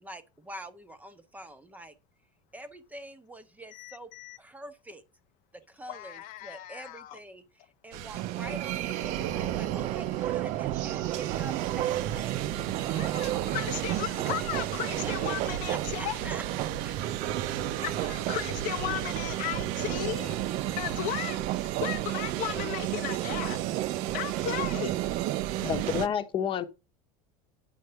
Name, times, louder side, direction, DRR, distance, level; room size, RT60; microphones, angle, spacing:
voice 1, 0.0-2.0 2.5-4.1 4.4-5.0 5.5-13.8 14.9-16.4 16.8-17.0, right 1 dB, 10° right, 0.9 m, -45 dB
voice 2, 3.7-4.4 5.9-7.2 12.9-16.2 17.8-20.4 20.8-23.6 24.1-25.0, left 12 dB, 55° left, 0.7 m, -35 dB
sound 1, 7.9-26.1, right 11 dB, 65° right, 0.9 m, -36 dB
London Underground- one stop Bakerloo journey, 8.1-26.1, right 15 dB, 45° right, 0.4 m, -33 dB
voice 3, 25.6-26.6, left 8 dB, 30° left, 1.1 m, -29 dB
9.2 x 4.6 x 6.7 m
supercardioid pair, 140°, 16 cm